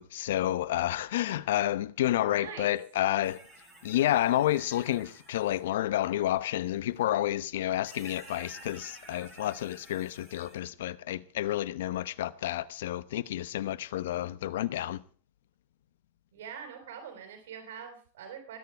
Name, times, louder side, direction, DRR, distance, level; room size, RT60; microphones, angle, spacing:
voice 1, 0.0-3.4 3.8-15.0, left 13 dB, 85° left, 0.9 m, -30 dB
voice 2, 2.4-2.7 16.3-18.6, right 7 dB, 80° right, 4.1 m, -43 dB
sound 1, 3.2-5.6 7.0-7.1 7.8-10.6, right 2 dB, 5° right, 7.6 m, -51 dB
20.5 x 9.5 x 4.6 m
supercardioid pair, 125°, 0 cm